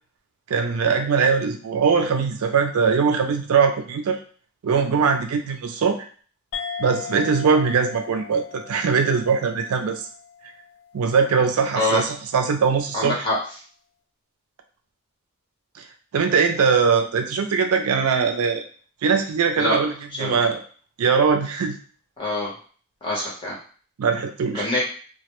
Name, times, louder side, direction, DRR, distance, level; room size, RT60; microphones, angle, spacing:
voice 1, 0.5-4.2 4.6-6.0 6.8-10.0 10.9-13.2 16.1-18.6 19.0-19.9 20.2-20.6 21.0-21.8 24.0-24.7, right 5 dB, 80° right, 5 dB, 0.4 m, -21 dB
sound 1, 6.5-11.4, left 7 dB, 60° left, 0.4 m, -38 dB
voice 2, 12.9-13.4 19.6-19.8 20.1-20.4 22.2-22.5 23.0-23.6 24.5-24.8, left 1 dB, 25° left, -5 dB, 0.9 m, -24 dB
2.2 x 2.1 x 2.9 m, 0.42 s
head